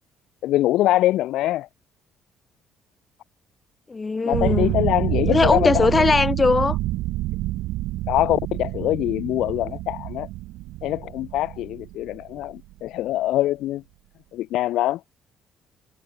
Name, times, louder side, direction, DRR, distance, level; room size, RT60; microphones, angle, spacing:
voice 1, 0.4-1.7 4.2-6.1 8.1-10.3 10.8-13.8 14.3-15.0, left 15 dB, 80° left, 0.4 m, -23 dB
voice 2, 3.9-4.7 5.3-6.8, left 4 dB, 25° left, 0.9 m, -20 dB
sound 1, 4.3-12.7, right 17 dB, 90° right, 0.9 m, -27 dB
cardioid pair, 105°, 0 cm